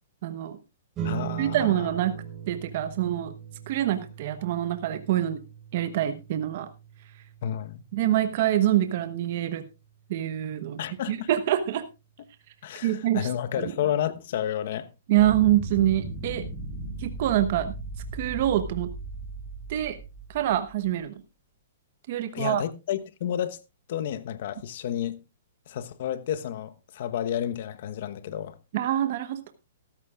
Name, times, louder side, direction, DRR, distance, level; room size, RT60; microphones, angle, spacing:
voice 1, 0.2-0.6 1.4-2.1 2.5-3.3 3.7-5.4 5.7-6.7 7.9-9.7 10.1-10.8 11.1-11.8 12.8-13.3 13.6-13.7 15.1-16.4 17.0-17.7 18.1-18.9 19.7-20.0 20.3-21.2 22.1-22.6 28.7-29.5, right 12 dB, 50° right, 1.1 m, -25 dB
voice 2, 1.0-1.7 7.4-7.8 10.8-11.3 12.6-14.9 22.3-23.6 23.9-25.2 25.7-28.6, left 10 dB, 55° left, 1.1 m, -31 dB
sound 1, 1.0-11.7, right 9 dB, 20° right, 4.5 m, -41 dB
sound 2, 15.2-20.9, right 2 dB, 5° right, 4.8 m, -37 dB
15.0 x 13.5 x 2.4 m
hypercardioid pair, 150°, 0 cm